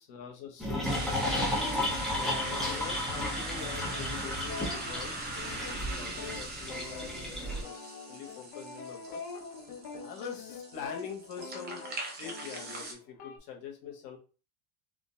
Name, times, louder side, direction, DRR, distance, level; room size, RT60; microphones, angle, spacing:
voice 1, 0.0-1.9 2.5-5.1 5.5-9.2 10.0-11.8 12.2-14.2, left 7 dB, 50° left, 1 dB, 1.1 m, -44 dB
sound 1, 0.6-7.6, left 1 dB, ahead, 0.3 m, -34 dB
sound 2, 0.8-12.9, right 2 dB, 20° right, 0.7 m, -41 dB
sound 3, 1.2-13.4, left 4 dB, 80° left, 0.9 m, -44 dB
3.7 x 2.3 x 2.6 m, 0.35 s
supercardioid pair, 150°, 46 cm